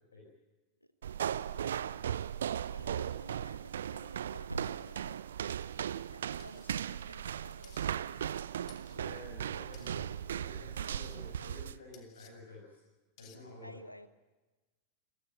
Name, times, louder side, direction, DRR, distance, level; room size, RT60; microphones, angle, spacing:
sound 1, 1.0-11.8, right 9 dB, 65° right, 0.7 m, -37 dB
voice 1, 1.3-2.3 2.7-5.3 6.1-7.8 13.6-14.1, equal, 90° left, 14 dB, 1.2 m, -53 dB
voice 2, 2.8-3.3 8.9-12.8 13.2-13.8, left 2 dB, 70° left, -3 dB, 7.4 m, -51 dB
Thump thud, 3.6-7.7, right 3 dB, 85° right, 1.3 m, -50 dB
sound 2, 6.4-6.9 7.6-7.9 8.7-9.0 9.7-10.0 10.8-11.2 11.9-12.3 13.2-13.4, left 10 dB, 40° left, 2.7 m, -59 dB
29.5 x 16.0 x 9.4 m, 1.2 s
figure-of-eight pair, 90°, 0 cm